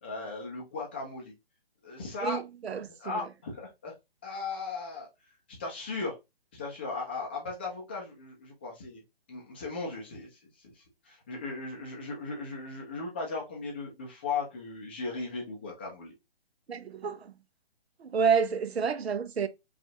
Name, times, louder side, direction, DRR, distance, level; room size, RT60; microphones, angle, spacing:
voice 1, 0.0-1.3 1.8-2.4 2.9-3.9 4.2-5.1 5.6-6.2 6.5-9.0 9.3-10.4 11.0-16.1, left 4 dB, 10° left, 0.4 m, -37 dB
voice 2, 2.2-3.2 16.7-17.3 18.0-19.5, right 6 dB, 85° right, 0.7 m, -29 dB
5.0 x 2.4 x 2.8 m
hypercardioid pair, 155°, 31 cm